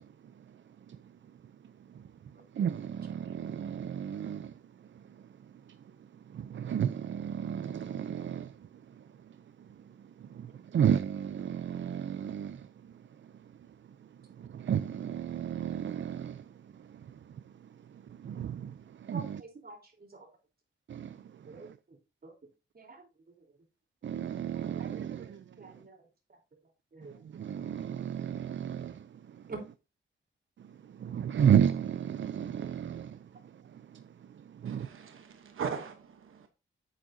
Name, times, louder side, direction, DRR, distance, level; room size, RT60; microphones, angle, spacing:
voice 1, 0.0-19.4 20.9-21.8 24.0-25.9 27.0-29.5 30.6-35.2, right 8 dB, 70° right, 0.5 m, -34 dB
voice 2, 19.1-20.3 21.5-23.6 24.6-27.2 29.5-29.6, right 3 dB, 50° right, 3.7 m, -49 dB
voice 3, 34.6-36.5, right 6 dB, 90° right, 1.0 m, -39 dB
9.2 x 8.5 x 2.7 m
cardioid pair, 75°, 20 cm